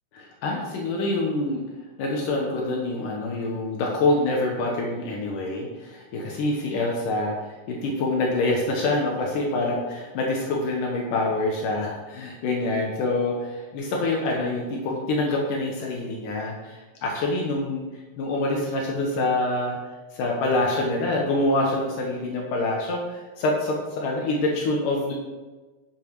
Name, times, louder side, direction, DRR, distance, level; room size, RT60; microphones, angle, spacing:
voice 1, 0.1-1.6 2.0-17.9 18.2-19.8 20.1-25.1, left 2 dB, 80° left, -1 dB, 2.9 m, -26 dB
11.5 x 7.1 x 4.8 m, 1.2 s
omnidirectional pair, 3.7 m